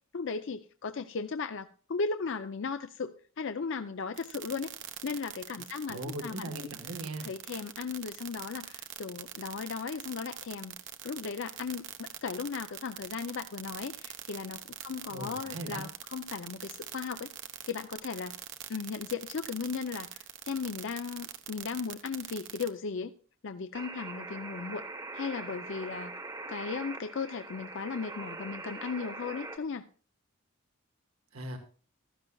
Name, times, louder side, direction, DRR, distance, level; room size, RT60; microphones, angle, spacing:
voice 1, 0.1-4.7 5.0-6.5 7.2-10.8 11.0-17.3 17.6-18.3 18.7-23.1 23.4-24.8 25.1-26.1 26.5-29.8, left 5 dB, 60° left, 9 dB, 0.5 m, -36 dB
sound 1, 4.2-22.7, right 11 dB, 60° right, 0.9 m, -43 dB
voice 2, 5.9-7.3 15.1-15.8 31.3-31.6, right 1 dB, 90° right, 4 dB, 1.6 m, -39 dB
sound 2, 23.7-29.6, right 3 dB, 20° right, 1.0 m, -42 dB
15.5 x 12.5 x 2.3 m, 0.42 s
head